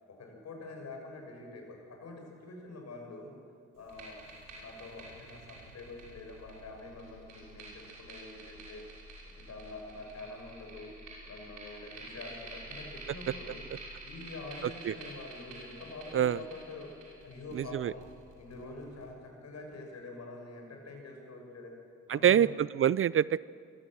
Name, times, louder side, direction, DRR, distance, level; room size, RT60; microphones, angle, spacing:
voice 1, 0.1-3.3 3.8-4.2 4.6-8.8 9.2-10.9 11.3-13.6 14.0-16.9 17.2-18.0 18.4-21.7 22.1-22.5, left 3 dB, 60° left, 2 dB, 6.4 m, -46 dB
sound 1, 3.8-19.0, right 2 dB, 90° right, 6.1 m, -49 dB
voice 2, 17.5-17.9 22.1-23.4, right 9 dB, 45° right, 20 dB, 0.5 m, -25 dB
22.5 x 15.0 x 7.7 m, 2.2 s
supercardioid pair, 60°, 30 cm